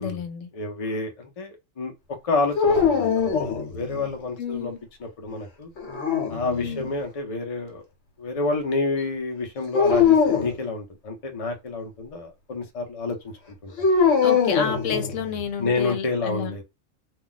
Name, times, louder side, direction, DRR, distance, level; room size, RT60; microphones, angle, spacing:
voice 1, 0.0-0.5 4.4-4.8 6.5-6.9 14.2-16.5, left 7 dB, 85° left, 1.0 m, -30 dB
voice 2, 0.5-1.9 2.2-4.7 5.0-5.7 6.3-7.8 8.2-13.3 13.6-13.7 15.6-16.6, left 3 dB, 40° left, 0.6 m, -29 dB
sound 1, 2.6-4.1 5.8-6.9 9.7-10.5 13.8-15.4, left 6 dB, 60° left, 1.1 m, -22 dB
2.3 x 2.2 x 3.9 m
omnidirectional pair, 1.3 m